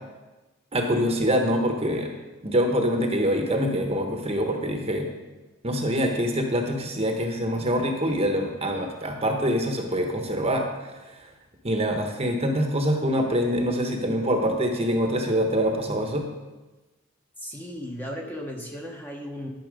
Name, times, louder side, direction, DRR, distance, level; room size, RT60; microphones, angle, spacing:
voice 1, 0.7-2.1 2.4-5.1 5.6-10.9 11.6-16.2, equal, 30° right, 3 dB, 1.0 m, -25 dB
voice 2, 17.4-19.5, equal, 10° left, 0 dB, 1.0 m, -36 dB
12.5 x 5.8 x 5.2 m, 1.2 s
head